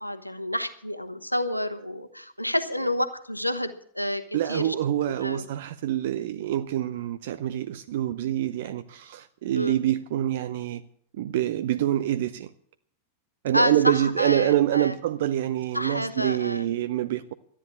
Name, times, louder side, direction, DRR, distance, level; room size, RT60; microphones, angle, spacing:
voice 1, 0.0-4.2 4.5-4.7 5.2-5.4 9.5-9.8 13.5-14.9 15.7-16.7, left 1 dB, 90° left, 1.2 m, -28 dB
voice 2, 4.3-10.8 11.1-12.5 13.4-17.3, right 12 dB, 55° right, 0.7 m, -26 dB
13.5 x 10.0 x 8.6 m
figure-of-eight pair, 90°, 0 cm